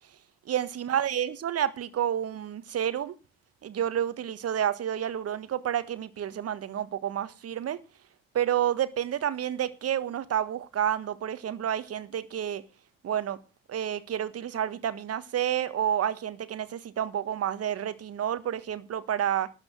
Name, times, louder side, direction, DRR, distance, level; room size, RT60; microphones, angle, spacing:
voice 1, 0.5-3.1 3.6-7.8 8.3-12.6 13.0-13.4 13.7-19.5, right 10 dB, 50° right, 1.4 m, -29 dB
12.5 x 8.2 x 6.5 m
hypercardioid pair, 45°, 31 cm